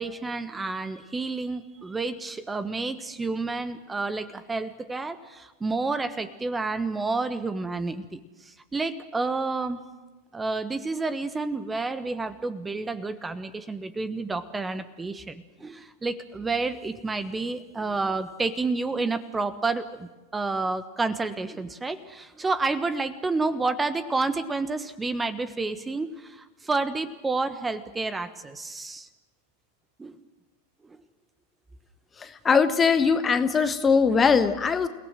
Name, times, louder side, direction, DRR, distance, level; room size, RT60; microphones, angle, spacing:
voice 1, 0.0-9.8 10.3-29.1 30.0-30.1 30.8-31.0, right 3 dB, 10° right, 12 dB, 1.3 m, -30 dB
voice 2, 32.4-34.9, left 5 dB, 20° left, 10 dB, 1.3 m, -20 dB
29.0 x 18.0 x 7.7 m, 1.2 s
figure-of-eight pair, 90°, 0 cm